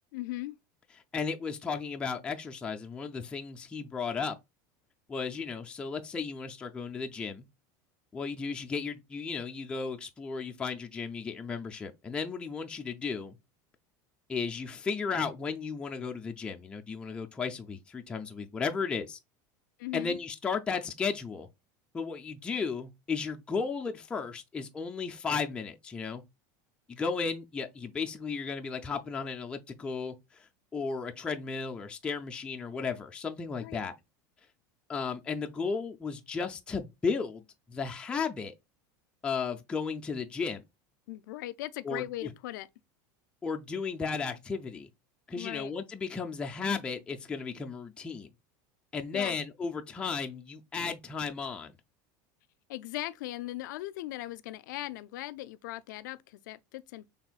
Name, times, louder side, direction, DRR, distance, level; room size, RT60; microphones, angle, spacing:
voice 1, 0.1-0.6 19.8-20.2 33.6-33.8 41.1-42.7 45.4-45.7 49.1-49.4 52.7-57.1, left 16 dB, 90° left, 0.4 m, -39 dB
voice 2, 1.1-4.4 5.1-7.4 8.1-13.4 14.3-19.2 19.9-21.5 21.9-26.2 26.9-33.9 34.9-37.4 37.7-38.5 39.2-40.6 41.8-42.3 43.4-44.9 45.3-48.3 48.9-51.7, left 5 dB, 10° left, 0.4 m, -34 dB
6.0 x 3.4 x 2.4 m
supercardioid pair, 160°, 10 cm